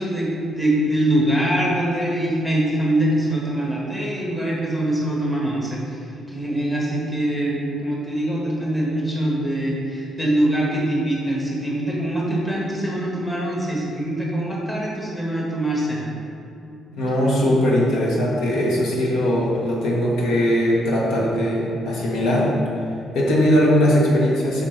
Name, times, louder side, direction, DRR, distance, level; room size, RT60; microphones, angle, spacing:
voice 1, 0.0-6.0 6.3-16.1, right 1 dB, 10° left, -4 dB, 1.3 m, -23 dB
voice 2, 17.0-22.5 23.1-24.6, equal, 80° left, -3 dB, 1.4 m, -20 dB
7.6 x 5.6 x 3.4 m, 2.7 s
cardioid pair, 145°, 0 cm